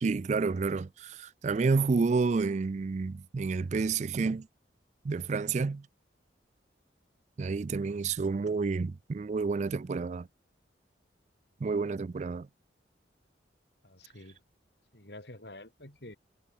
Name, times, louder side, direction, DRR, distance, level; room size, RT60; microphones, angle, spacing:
voice 1, 0.0-4.5 5.0-5.9 7.4-10.3 11.6-12.5, right 4 dB, 40° right, 0.3 m, -29 dB
voice 2, 13.8-14.4 14.9-16.2, left 1 dB, 65° left, 6.9 m, -48 dB
head